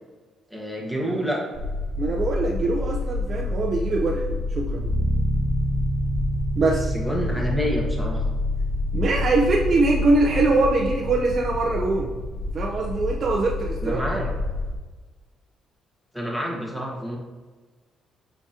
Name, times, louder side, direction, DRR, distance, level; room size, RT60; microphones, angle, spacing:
voice 1, 0.5-1.4 6.9-8.3 13.8-14.3 16.1-17.2, equal, ahead, -1 dB, 1.5 m, -28 dB
sound 1, 1.5-14.7, left 2 dB, 20° right, 1.6 m, -29 dB
voice 2, 2.0-4.9 6.6-6.9 8.9-12.1 12.5-14.0, right 3 dB, 45° right, -2 dB, 0.7 m, -23 dB
sound 2, 4.8-12.6, equal, 20° left, 1.5 m, -29 dB
6.6 x 5.1 x 2.9 m, 1.3 s
cardioid pair, 90°, 0 cm